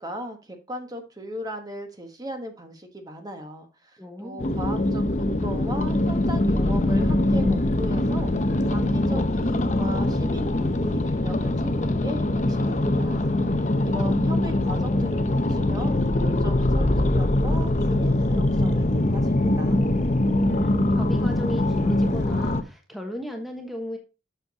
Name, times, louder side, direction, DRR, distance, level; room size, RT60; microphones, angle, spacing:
voice 1, 0.0-19.8, equal, 20° right, 5 dB, 1.3 m, -38 dB
voice 2, 4.0-4.6 20.5-24.0, left 1 dB, ahead, 2 dB, 1.2 m, -35 dB
sound 1, 4.4-22.6, left 1 dB, 40° left, 0.8 m, -23 dB
7.9 x 6.5 x 4.0 m, 0.30 s
head